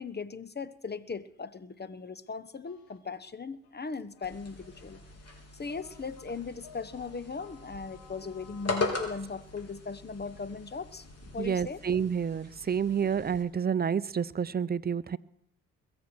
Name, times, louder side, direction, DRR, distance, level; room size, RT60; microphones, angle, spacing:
voice 1, 0.0-5.0 5.5-11.1 11.3-11.8 13.0-13.1, left 4 dB, 25° left, 15 dB, 1.1 m, -38 dB
sound 1, 2.6-9.1, left 7 dB, 80° left, 2.7 m, -57 dB
sound 2, 4.2-13.4, left 3 dB, 40° left, 3.7 m, -40 dB
voice 2, 11.4-15.2, right 7 dB, 25° right, 16 dB, 0.6 m, -29 dB
22.0 x 7.4 x 6.3 m, 0.72 s
supercardioid pair, 60°, 37 cm